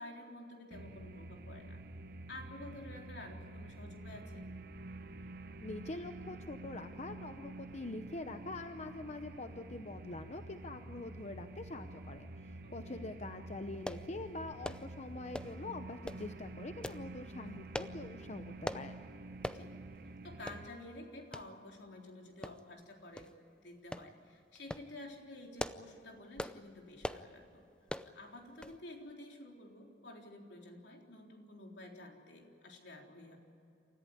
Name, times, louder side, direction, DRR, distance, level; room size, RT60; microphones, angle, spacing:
voice 1, 0.0-1.8 2.3-4.5 12.6-13.0 19.5-19.7 20.2-23.3 23.6-27.7 28.1-33.4, left 1 dB, 80° left, 1 dB, 3.8 m, -51 dB
sound 1, 0.7-20.7, right 2 dB, 55° right, 0.9 m, -49 dB
voice 2, 5.6-19.0, left 2 dB, 40° left, 8 dB, 0.8 m, -44 dB
sound 2, 13.9-14.1 14.6-14.9 15.3-15.6 16.0-16.3 16.8-17.0 17.7-18.0 18.6-18.9 19.4-19.6 20.0-20.1 20.5-20.6 21.3-21.5 22.4-22.8 23.2-23.3 23.9-24.1 24.5-24.9 25.4-25.9 26.4-26.6 27.0-27.3 27.9-28.1 28.6-28.8 29.1-29.2, left 1 dB, 5° left, 0.6 m, -41 dB
28.5 x 14.5 x 9.7 m, 2.7 s
head